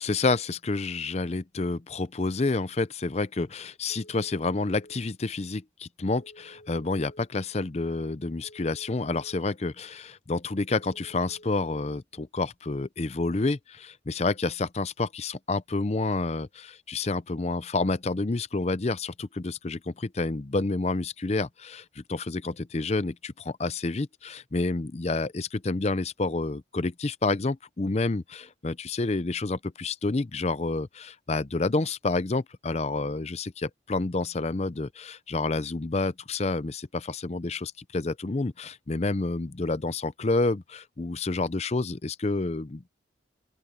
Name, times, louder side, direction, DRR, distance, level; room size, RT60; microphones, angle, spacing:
voice 1, 0.0-42.9, left 3 dB, 35° left, 0.5 m, -29 dB
Telephone, 3.9-5.0 6.2-7.3 8.4-9.5 10.7-11.8, equal, 50° left, 7.4 m, -52 dB
open air
head